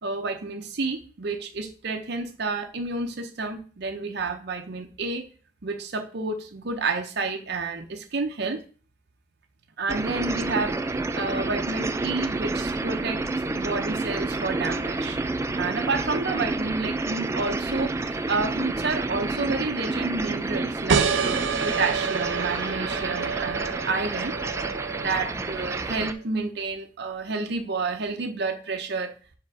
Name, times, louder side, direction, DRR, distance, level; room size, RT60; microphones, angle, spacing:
voice 1, 0.0-5.3 5.6-8.6 9.8-10.8 11.1-13.2 13.5-15.2 15.6-24.3 25.0-29.1, right 3 dB, 65° right, 4 dB, 0.7 m, -30 dB
sound 1, 9.9-26.1, right 3 dB, 15° right, 0.3 m, -29 dB
sound 2, 20.9-26.1, right 6 dB, 90° right, 0.5 m, -28 dB
4.7 x 4.3 x 4.8 m, 0.38 s
head